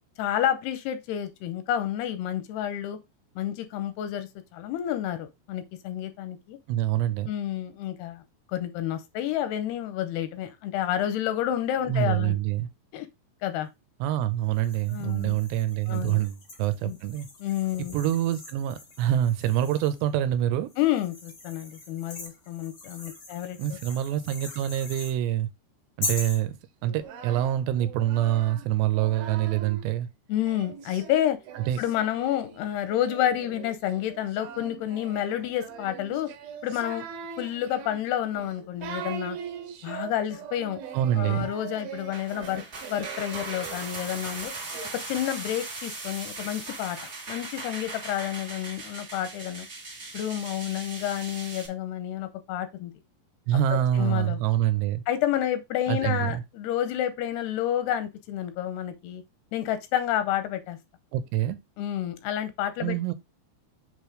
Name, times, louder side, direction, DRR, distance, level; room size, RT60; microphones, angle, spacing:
voice 1, 0.2-3.0 3.4-6.6 7.3-8.2 8.5-12.4 12.9-13.1 13.4-13.7 14.9-15.4 15.9-16.2 16.8-17.0 17.4-18.0 20.8-23.8 30.3-31.4 31.8-36.3 36.6-37.0 37.4-39.4 39.8-40.8 41.2-44.5 44.9-47.0 47.3-49.7 50.1-52.9 53.7-54.4 55.1-59.2 59.5-60.8 61.8-63.0, left 11 dB, 85° left, 2.6 m, -29 dB
voice 2, 6.7-7.3 11.9-12.7 14.0-17.3 17.8-20.7 23.6-25.5 26.0-26.6 26.8-30.1 31.7-31.8 40.9-41.5 53.5-55.0 55.9-56.4 61.1-61.6 62.8-63.1, right 12 dB, 90° right, 3.0 m, -26 dB
sound 1, 14.5-20.1 20.7-25.2 26.0-26.4, left 3 dB, 55° left, 1.0 m, -41 dB
Singing, 26.8-29.9 30.4-44.9, right 7 dB, 70° right, 2.7 m, -42 dB
sound 2, 42.0-51.7, right 3 dB, 50° right, 0.8 m, -39 dB
7.6 x 3.2 x 4.9 m
omnidirectional pair, 4.8 m